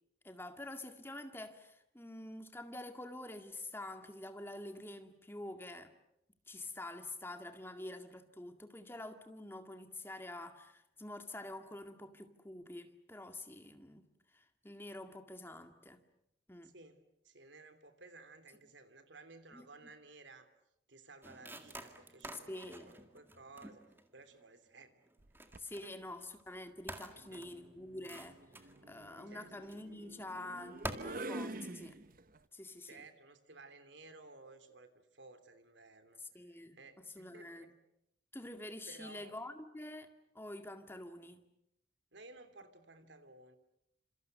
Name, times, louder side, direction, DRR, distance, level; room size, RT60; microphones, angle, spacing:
voice 1, 0.2-5.9 6.5-14.1 14.3-16.0 16.5-16.7 19.5-19.7 22.5-22.9 25.6-32.0 32.5-33.0 36.3-37.7 38.3-40.1 40.3-41.5, left 1 dB, 10° left, 2.0 m, -47 dB
voice 2, 16.6-20.5 20.9-23.8 24.1-24.9 25.8-25.9 27.1-27.4 29.3-29.5 32.8-37.7 38.9-39.4 42.1-43.6, right 3 dB, 70° right, 3.1 m, -56 dB
sound 1, 21.2-24.4 25.0-25.9 26.4-26.6 26.9-29.2 29.6-29.8 30.1-30.4 30.8-30.9, right 2 dB, 10° right, 2.0 m, -48 dB
sound 2, 25.2-25.7 27.1-32.4, right 2 dB, 45° right, 1.1 m, -47 dB
29.0 x 27.5 x 6.7 m
head